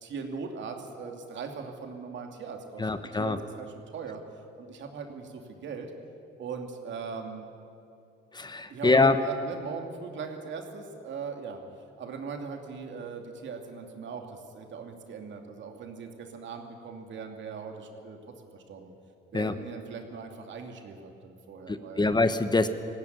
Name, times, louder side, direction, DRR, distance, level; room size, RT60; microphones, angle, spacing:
voice 1, 0.0-4.2 4.6-5.9 6.4-7.5 8.7-18.2 18.5-18.9 19.3-22.1, right 5 dB, 70° right, 4 dB, 2.6 m, -40 dB
voice 2, 2.8-3.4 8.3-9.1 19.3-19.5 21.7-22.7, left 3 dB, 20° left, 10 dB, 1.1 m, -24 dB
19.0 x 16.5 x 9.5 m, 2.6 s
cardioid pair, 90°, 20 cm